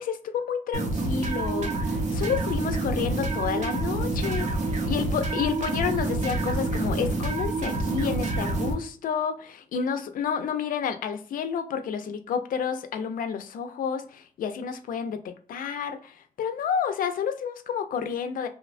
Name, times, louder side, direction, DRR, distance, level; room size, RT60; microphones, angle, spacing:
voice 1, 0.0-18.5, left 7 dB, 75° left, 0.4 m, -30 dB
sound 1, 0.7-8.7, right 2 dB, 55° right, 0.7 m, -27 dB
2.9 x 2.1 x 2.4 m
wide cardioid pair, 145°, 15 cm